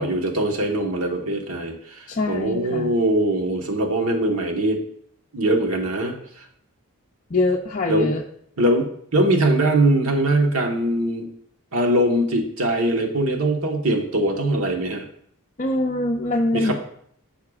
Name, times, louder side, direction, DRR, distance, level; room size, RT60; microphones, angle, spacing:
voice 1, 0.0-4.8 5.3-6.1 7.9-8.1 8.6-11.3 11.7-15.1 16.5-16.7, right 1 dB, 70° right, 3 dB, 1.3 m, -22 dB
voice 2, 2.1-2.9 7.3-8.2 15.6-16.7, left 2 dB, 35° left, 0 dB, 0.5 m, -23 dB
13.5 x 5.7 x 2.4 m, 0.66 s
head